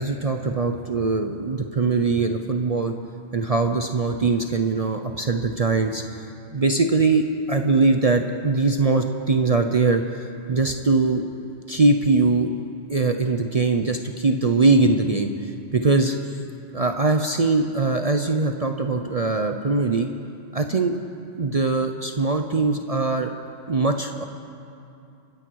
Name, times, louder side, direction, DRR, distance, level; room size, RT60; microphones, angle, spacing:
voice 1, 0.0-2.9 3.3-11.2 11.7-12.5 12.9-16.2 16.7-20.1 20.5-20.9 21.4-23.3 23.7-24.2, right 3 dB, 40° right, 5 dB, 0.6 m, -22 dB
29.0 x 10.0 x 4.7 m, 2.7 s
omnidirectional pair, 1.3 m